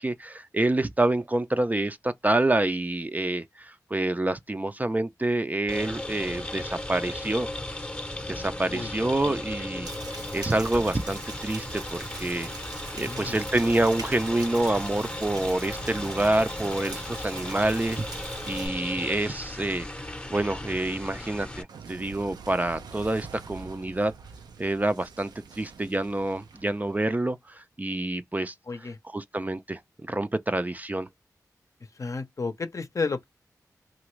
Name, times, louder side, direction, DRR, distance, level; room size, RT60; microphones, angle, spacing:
voice 1, 0.0-7.5 8.3-9.9 10.3-12.5 13.0-19.9 20.3-24.1 24.6-25.3 25.6-28.5 28.8-31.1, right 2 dB, 25° right, 0.4 m, -27 dB
sound 1, 5.7-21.6, left 1 dB, 15° left, 0.7 m, -36 dB
Rain, 9.8-18.7, right 3 dB, 75° right, 1.0 m, -42 dB
voice 2, 12.9-13.4 28.7-29.0 32.0-33.2, left 4 dB, 50° left, 0.6 m, -32 dB
Clock, 15.0-15.1 15.3-18.3 18.5-27.4, right 5 dB, 90° right, 0.5 m, -46 dB
2.9 x 2.5 x 3.1 m
cardioid pair, 45°, 7 cm